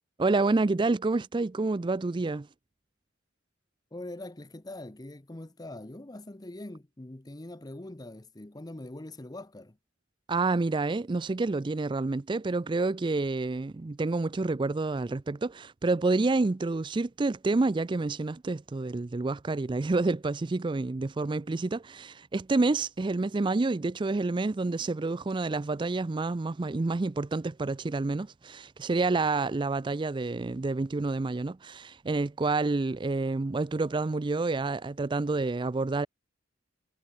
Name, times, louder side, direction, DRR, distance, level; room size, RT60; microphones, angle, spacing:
voice 1, 0.2-2.5 10.3-36.1, right 3 dB, 25° right, 0.4 m, -28 dB
voice 2, 3.9-9.8, left 1 dB, 20° left, 0.8 m, -43 dB
head